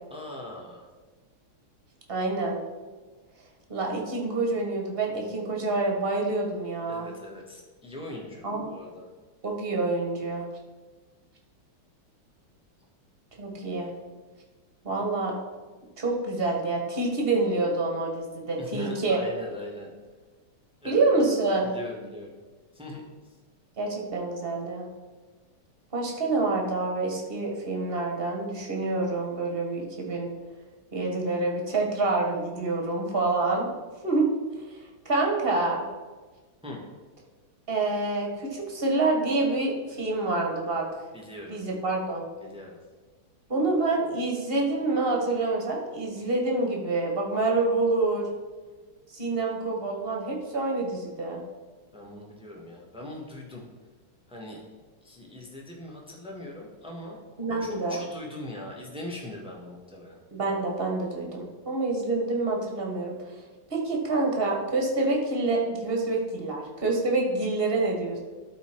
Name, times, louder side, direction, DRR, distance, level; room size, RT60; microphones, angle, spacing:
voice 1, 0.1-0.9 6.9-9.1 18.6-19.9 20.8-21.3 21.6-22.4 22.7-23.3 36.6-36.8 41.1-41.6 42.4-42.8 51.9-53.6 54.3-54.6 55.0-57.2 57.6-60.2, left 1 dB, 5° right, -1 dB, 1.0 m, -40 dB
voice 2, 2.1-2.6 3.7-7.1 8.4-8.7 9.4-10.5 13.4-13.9 14.8-15.3 16.0-19.2 20.8-21.7 23.8-24.9 25.9-30.3 30.9-33.7 34.0-34.3 34.7-34.8 35.0-35.8 37.7-40.8 41.5-42.2 43.5-48.3 49.1-51.4 57.4-58.0 60.3-63.1 63.7-68.2, right 3 dB, 30° right, 0 dB, 1.4 m, -27 dB
12.5 x 4.2 x 4.5 m, 1.3 s
omnidirectional pair, 2.4 m